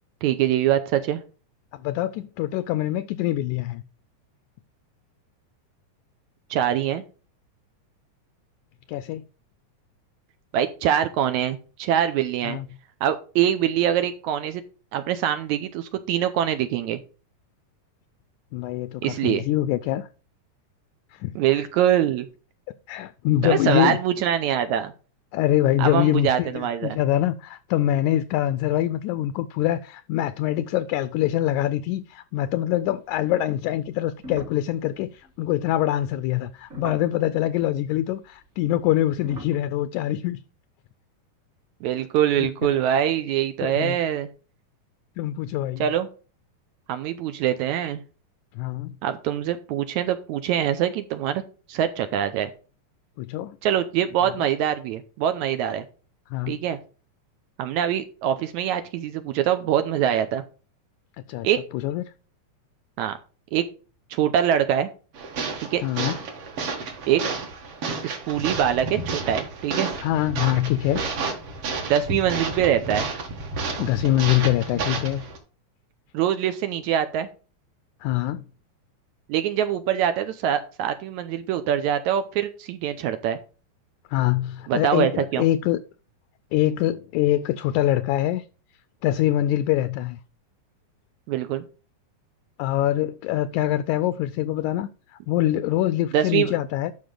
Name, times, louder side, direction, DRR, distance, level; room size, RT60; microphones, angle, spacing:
voice 1, 0.2-1.2 6.5-7.0 10.5-12.6 13.0-14.6 14.9-17.0 19.0-19.5 21.4-22.3 23.4-24.9 25.8-27.0 41.8-44.3 45.8-46.1 46.9-48.0 49.0-51.4 51.7-52.5 53.6-55.8 56.5-56.8 57.6-60.4 61.4-61.6 63.0-63.2 63.5-63.6 64.1-64.9 65.7-65.8 67.1-67.2 68.0-69.9 71.9-73.1 76.1-77.3 79.3-83.4 84.7-85.5 91.3-91.6 96.1-96.5, right 10 dB, 75° right, 1.9 m, -24 dB
voice 2, 1.7-3.8 8.9-9.2 12.4-12.7 18.5-20.1 21.1-21.7 22.9-24.0 25.3-40.4 42.4-42.5 43.6-44.0 45.2-45.9 48.6-48.9 53.2-53.6 56.3-56.6 61.3-61.5 61.7-62.0 65.8-66.2 70.0-71.0 73.8-75.2 78.0-78.4 84.1-85.8 86.5-88.5 89.0-90.2 92.6-94.9 95.3-96.9, left 13 dB, 80° left, 1.9 m, -24 dB
sound 1, 34.1-37.4 38.5-39.6, equal, 30° right, 1.4 m, -41 dB
sound 2, 65.1-75.4, right 4 dB, 50° right, 2.4 m, -31 dB
12.0 x 5.5 x 3.8 m
omnidirectional pair, 3.6 m